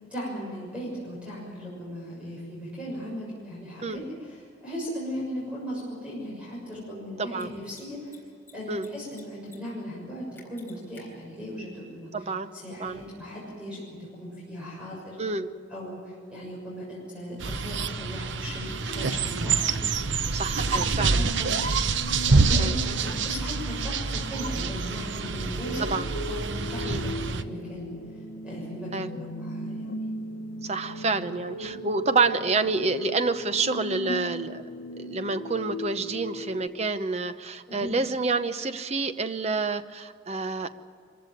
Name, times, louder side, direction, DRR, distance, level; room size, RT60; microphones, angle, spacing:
voice 1, 0.1-8.2 8.5-12.2 12.5-13.8 14.2-15.2 15.7-20.4 20.7-21.6 22.1-26.0 26.3-27.9 28.4-28.9 29.2-30.1 31.6-31.7 37.7-38.0, equal, 5° right, -5 dB, 6.6 m, -38 dB
Mechanisms, 4.8-4.9 7.2-7.4 7.7-7.8 8.1-8.9 9.1-9.6 9.8-9.9 10.4-11.0, left 5 dB, 10° left, 4.2 m, -52 dB
voice 2, 7.2-7.5 8.7-8.9 12.1-12.5 12.8-13.0 15.2-15.5 20.3-21.2 22.6-22.8 25.8-26.1 26.8-27.0 28.9-29.1 30.6-34.6 35.0-40.7, right 3 dB, 35° right, 10 dB, 0.8 m, -28 dB
sound 1, 17.4-27.4, right 4 dB, 70° right, 0.8 m, -27 dB
sound 2, 18.9-36.7, equal, 80° left, 1.3 m, -38 dB
24.5 x 15.5 x 9.2 m, 2.2 s
head